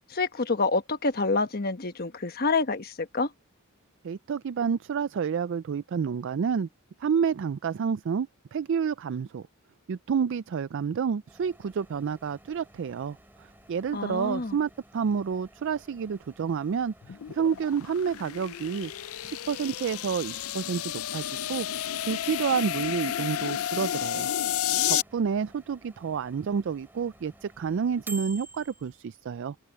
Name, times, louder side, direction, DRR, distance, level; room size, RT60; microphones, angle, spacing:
voice 1, 0.1-3.3 13.9-14.6, left 3 dB, 45° left, 1.2 m, -27 dB
voice 2, 4.0-6.7 7.0-9.4 9.9-13.2 13.7-18.9 19.2-21.2 21.5-21.7 22.1-24.3 24.9-29.6, right 6 dB, 60° right, 0.4 m, -29 dB
Microwave oven, 11.3-29.0, right 2 dB, 10° right, 3.5 m, -51 dB
sound 1, 17.0-25.0, left 11 dB, 70° left, 0.4 m, -31 dB
head